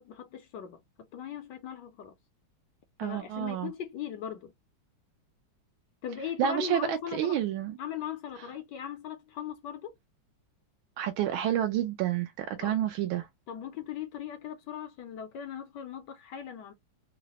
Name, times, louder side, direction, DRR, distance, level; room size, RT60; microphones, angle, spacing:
voice 1, 0.0-2.1 3.0-4.5 6.0-7.4 7.8-9.9 12.6-12.8 13.5-16.7, left 9 dB, 75° left, 1.0 m, -39 dB
voice 2, 3.0-3.7 6.4-7.7 11.0-13.3, right 11 dB, 80° right, 1.3 m, -29 dB
3.8 x 2.0 x 2.8 m
omnidirectional pair, 2.2 m